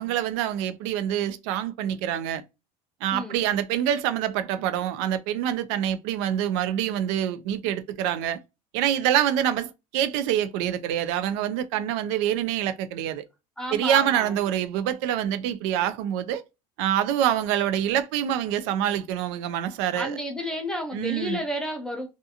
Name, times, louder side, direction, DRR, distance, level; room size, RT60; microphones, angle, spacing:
voice 1, 0.0-2.4 3.0-8.4 8.7-13.2 13.7-16.4 16.8-20.2 20.9-21.4, right 10 dB, 70° right, 0.4 m, -26 dB
voice 2, 13.6-14.3 19.9-22.1, equal, 5° left, 0.4 m, -31 dB
2.4 x 2.4 x 2.7 m
cardioid pair, 180°, 15 cm